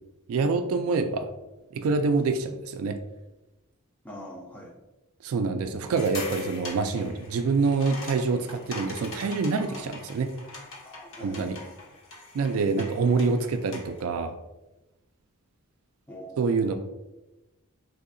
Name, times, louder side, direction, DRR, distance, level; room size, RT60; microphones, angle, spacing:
voice 1, 0.3-1.3 1.7-3.0 5.2-10.3 11.2-11.6 12.3-14.4 16.4-16.7, right 4 dB, 70° right, 8 dB, 0.3 m, -26 dB
voice 2, 4.0-4.8 9.5-9.8 10.8-11.7 16.1-16.7, equal, 5° left, -1 dB, 0.4 m, -44 dB
sound 1, 5.9-14.0, left 3 dB, 65° left, 0.7 m, -42 dB
3.9 x 2.7 x 2.5 m, 1.0 s
head